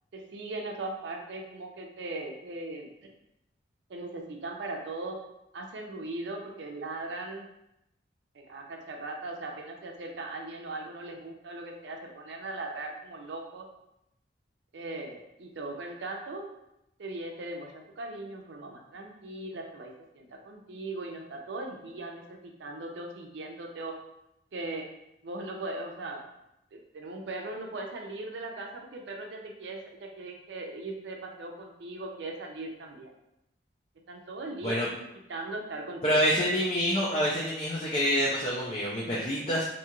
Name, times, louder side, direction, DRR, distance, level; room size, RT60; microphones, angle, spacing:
voice 1, 0.1-3.1 3.9-5.2 5.5-7.5 8.3-13.6 14.7-16.5 17.0-23.9 24.5-24.9 25.2-26.2 26.7-33.1 34.1-34.9 35.3-36.2, right 2 dB, 75° right, 2 dB, 0.5 m, -39 dB
voice 2, 36.0-39.7, equal, 30° left, -5 dB, 0.4 m, -27 dB
2.6 x 2.3 x 2.9 m, 0.84 s
head